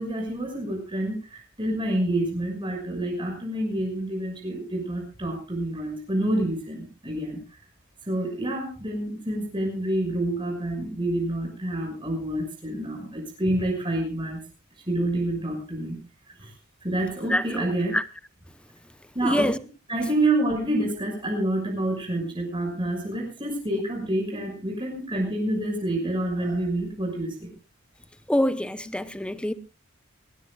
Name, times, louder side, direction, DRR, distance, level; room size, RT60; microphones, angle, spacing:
voice 1, 0.0-7.6 8.0-14.4 14.9-16.0 16.4-16.5 16.8-17.9 19.1-19.5 19.9-27.5, right 1 dB, 25° right, 6.0 m, -28 dB
voice 2, 17.3-18.0 19.2-19.6 28.3-29.5, left 1 dB, 5° left, 0.8 m, -25 dB
21.5 x 19.5 x 2.4 m
head